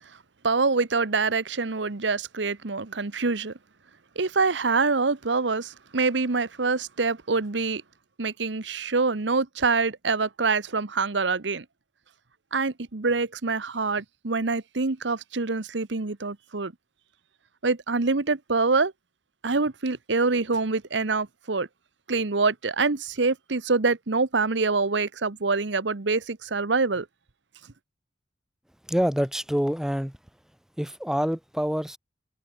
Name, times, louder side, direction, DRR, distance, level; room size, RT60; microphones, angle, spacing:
voice 1, 0.4-3.5 4.2-7.8 8.2-11.6 12.5-16.7 17.6-18.9 19.4-21.7 22.1-27.1, right 4 dB, 75° right, 1.1 m, -25 dB
voice 2, 28.9-30.1 30.8-32.0, equal, 5° right, 0.7 m, -26 dB
head